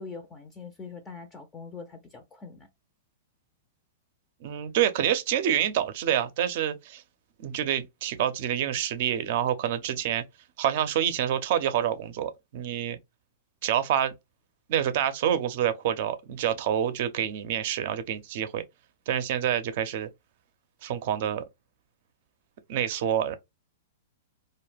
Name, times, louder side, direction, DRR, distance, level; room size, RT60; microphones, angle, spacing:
voice 1, 0.0-2.7, left 4 dB, 20° left, 0.4 m, -43 dB
voice 2, 4.4-7.0 7.4-10.2 10.6-13.0 13.6-14.1 14.7-18.6 19.1-20.1 20.8-21.4 22.7-23.4, right 10 dB, 60° right, 0.5 m, -27 dB
2.3 x 2.1 x 3.3 m
hypercardioid pair, 125°, 0 cm